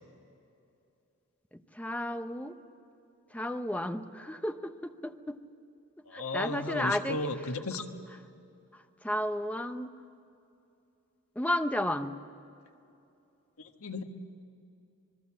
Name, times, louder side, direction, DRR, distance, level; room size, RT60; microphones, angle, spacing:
voice 1, 1.5-2.6 3.3-5.4 6.1-7.2 8.7-9.9 11.3-12.2, left 1 dB, 5° left, 8 dB, 0.8 m, -33 dB
voice 2, 6.1-7.9 13.6-14.0, left 2 dB, 85° left, 6 dB, 1.5 m, -35 dB
26.0 x 21.0 x 7.5 m, 2.7 s
head